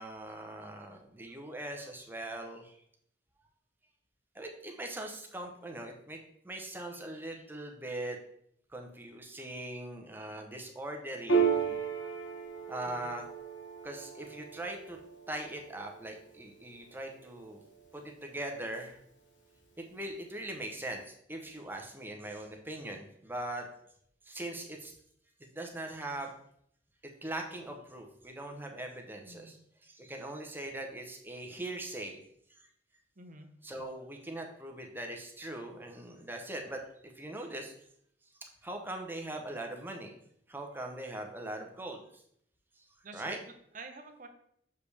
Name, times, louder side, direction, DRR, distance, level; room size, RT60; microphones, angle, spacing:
voice 1, 0.0-2.8 4.3-6.2 6.4-8.2 8.7-11.8 12.7-13.2 13.8-15.0 15.3-17.6 17.9-19.0 19.8-23.7 24.3-24.9 25.5-26.3 27.2-32.2 33.6-37.7 38.6-40.2 40.5-42.2 42.8-42.9 43.1-43.4, right 1 dB, 10° right, 2 dB, 0.8 m, -41 dB
Piano, 11.3-18.2, right 6 dB, 85° left, 1.1 m, -35 dB
voice 2, 12.8-13.1 29.2-29.5 33.2-33.5 43.0-44.3, right 3 dB, 45° right, 5 dB, 0.8 m, -49 dB
6.7 x 5.1 x 3.4 m, 0.70 s
head